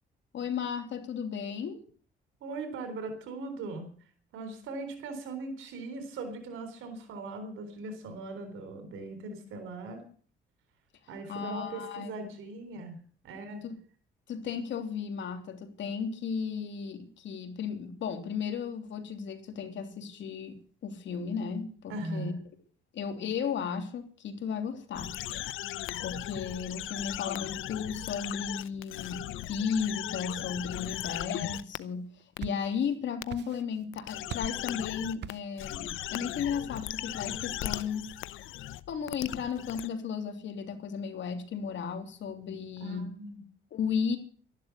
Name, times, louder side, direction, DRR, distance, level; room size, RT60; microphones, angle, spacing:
voice 1, 0.3-1.8 11.3-12.1 13.6-13.8 14.3-22.3 22.9-25.5 26.0-32.0 32.4-38.1 38.9-43.1 43.7-44.2, left 6 dB, 70° left, 3.2 m, -35 dB
voice 2, 2.4-3.9 4.3-10.0 11.1-13.6 21.9-22.4 42.8-43.4, right 2 dB, 90° right, 3.9 m, -39 dB
sound 1, 24.9-31.8 32.4-32.5 33.2-33.3 33.9-35.3 35.6-39.9, left 14 dB, 85° left, 0.8 m, -37 dB
sound 2, 32.0-33.0 33.3-33.9 34.3-34.7 35.2-35.6, right 10 dB, 60° right, 0.8 m, -42 dB
12.5 x 11.5 x 8.4 m
cardioid pair, 90°, 20 cm